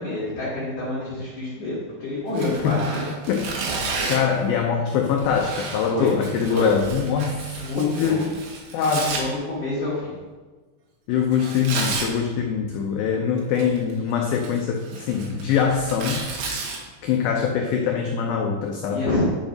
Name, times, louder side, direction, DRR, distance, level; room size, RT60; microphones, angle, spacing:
voice 1, 0.0-3.0 5.9-6.1 6.5-6.7 7.5-8.2 9.0-10.1 18.9-19.2, left 2 dB, 55° left, -9 dB, 3.2 m, -27 dB
Tearing, 2.3-4.3 5.2-9.2 11.3-12.1 13.4-13.9 14.3-16.8, right 4 dB, 65° right, 2.8 m, -32 dB
voice 2, 3.3-8.4 8.7-9.2 11.1-16.3 17.0-19.0, left 6 dB, 85° left, 2 dB, 2.1 m, -23 dB
10.0 x 5.1 x 5.2 m, 1.3 s
omnidirectional pair, 5.1 m